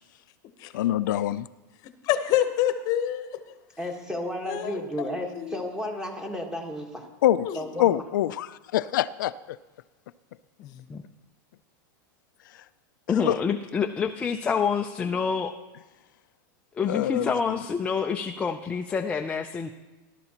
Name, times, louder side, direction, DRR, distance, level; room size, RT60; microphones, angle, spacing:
voice 1, 0.7-1.5 7.2-7.5 7.8-9.6 12.5-12.6 13.1-13.4 16.8-17.6, left 13 dB, 80° left, 13 dB, 0.4 m, -25 dB
voice 2, 2.0-3.4 4.5-5.1 5.3-5.6 7.4-7.6 10.6-10.8, left 12 dB, 35° left, 9 dB, 0.9 m, -27 dB
voice 3, 3.8-7.1 7.5-8.0, left 1 dB, 5° right, 3 dB, 1.3 m, -33 dB
voice 4, 13.1-15.5 16.8-19.7, left 6 dB, 10° left, 4 dB, 0.4 m, -27 dB
18.0 x 12.0 x 2.9 m, 1.2 s
supercardioid pair, 150°, 10 cm